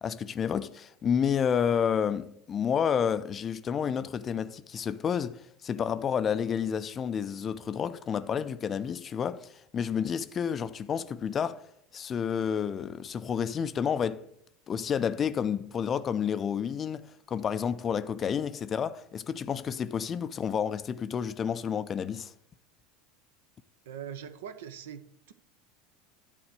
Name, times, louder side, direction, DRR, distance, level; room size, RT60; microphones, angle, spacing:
voice 1, 0.0-11.7 11.9-14.3 14.7-22.3, left 7 dB, 30° left, 0.5 m, -30 dB
voice 2, 23.9-25.3, right 8 dB, 65° right, 0.7 m, -42 dB
10.5 x 4.3 x 6.4 m
figure-of-eight pair, 75°, 0 cm